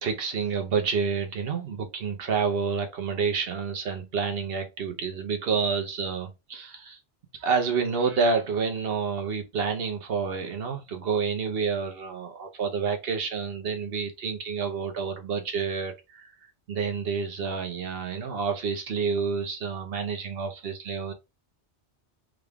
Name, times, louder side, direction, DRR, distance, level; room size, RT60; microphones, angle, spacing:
voice 1, 0.0-7.0 7.4-16.3 16.7-21.1, right 5 dB, 60° right, 1.0 m, -29 dB
3.7 x 2.3 x 3.4 m
omnidirectional pair, 1.2 m